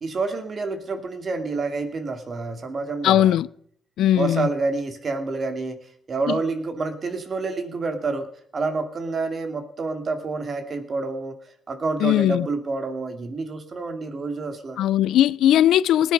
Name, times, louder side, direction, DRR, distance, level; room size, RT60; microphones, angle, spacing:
voice 1, 0.0-3.4 4.1-5.8 6.1-14.8, right 3 dB, 40° right, 2.4 m, -28 dB
voice 2, 3.0-3.5 4.0-4.5 12.0-12.5 14.8-16.1, left 12 dB, 80° left, 0.5 m, -18 dB
19.0 x 10.0 x 5.4 m
cardioid pair, 90°, 0 cm